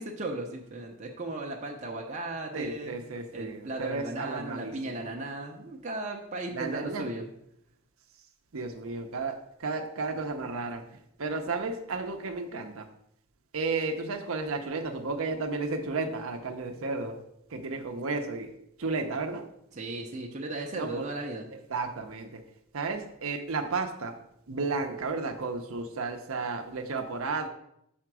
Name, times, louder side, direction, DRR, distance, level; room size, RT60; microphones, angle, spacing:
voice 1, 0.0-2.9 3.3-7.2 19.7-21.5, right 2 dB, 35° right, 0 dB, 0.7 m, -36 dB
voice 2, 2.5-5.0 6.5-7.1 8.5-10.8 11.2-12.9 13.5-17.2 17.5-18.5 18.8-19.5 20.8-21.1 21.7-22.4 22.7-24.1 24.5-27.5, right 3 dB, 65° right, 4 dB, 0.7 m, -33 dB
5.7 x 4.4 x 6.1 m, 0.78 s
head